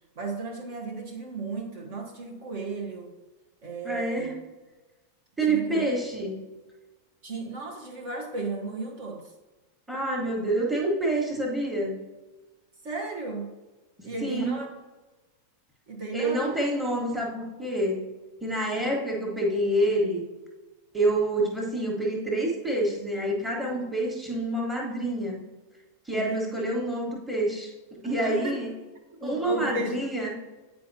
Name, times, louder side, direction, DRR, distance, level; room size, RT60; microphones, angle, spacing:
voice 1, 0.2-3.1 3.6-4.3 5.4-5.9 7.2-9.3 10.4-10.5 12.8-13.5 14.0-14.7 15.9-16.6 18.5-19.0 23.7-23.9 26.1-26.6 28.0-28.6 29.1-30.0, right 3 dB, 50° right, 0 dB, 1.1 m, -35 dB
voice 2, 3.8-4.3 5.4-6.3 9.9-12.0 14.0-14.6 16.1-18.0 18.4-20.2 20.9-25.4 26.1-27.7 28.0-28.7 29.2-30.3, right 1 dB, 5° right, -2 dB, 1.4 m, -27 dB
9.0 x 4.5 x 2.7 m, 1.2 s
figure-of-eight pair, 90°, 0 cm